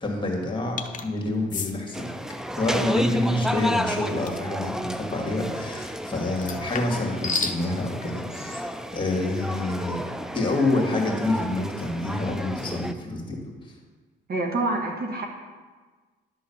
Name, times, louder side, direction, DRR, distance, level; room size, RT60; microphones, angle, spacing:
voice 1, 0.0-2.2 2.5-10.1 10.3-13.4, left 2 dB, 25° left, 0 dB, 2.1 m, -27 dB
sound 1, 0.8-1.1 1.5-1.7 4.3-4.5 6.4-7.6, left 4 dB, 40° left, 0.7 m, -30 dB
sound 2, 1.9-12.9, equal, 5° right, 0.4 m, -32 dB
voice 2, 14.3-15.3, right 2 dB, 50° right, 2 dB, 1.4 m, -26 dB
11.0 x 3.9 x 7.1 m, 1.4 s
cardioid pair, 90°, 20 cm